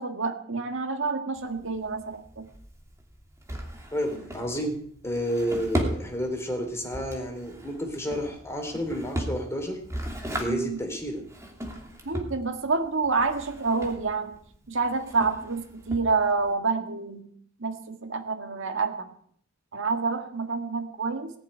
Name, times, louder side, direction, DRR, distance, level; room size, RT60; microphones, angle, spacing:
voice 1, 0.0-2.5 10.5-10.8 12.1-14.4 14.7-17.3 17.6-19.1 19.7-21.3, right 4 dB, 65° right, 6 dB, 1.7 m, -28 dB
Drawer open or close, 1.4-16.5, right 1 dB, 15° right, 2.7 m, -37 dB
voice 2, 3.9-4.8 5.0-9.8 10.3-11.2, equal, 15° left, 3 dB, 3.3 m, -30 dB
19.0 x 7.3 x 9.8 m, 0.62 s
head